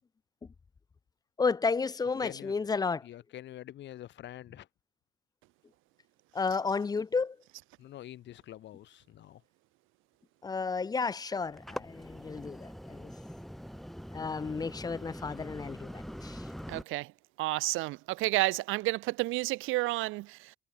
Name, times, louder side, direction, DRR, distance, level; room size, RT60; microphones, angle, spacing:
voice 1, 1.4-3.1 6.3-7.4 10.4-13.1 14.1-16.5, left 4 dB, 20° left, 0.3 m, -32 dB
voice 2, 2.2-2.6 3.0-4.7 7.8-9.4, left 13 dB, 65° left, 0.6 m, -46 dB
sound 1, 11.4-16.8, equal, ahead, 1.8 m, -43 dB
voice 3, 16.7-17.1 17.4-20.6, right 20 dB, 90° right, 0.4 m, -31 dB
cardioid pair, 90°, 20 cm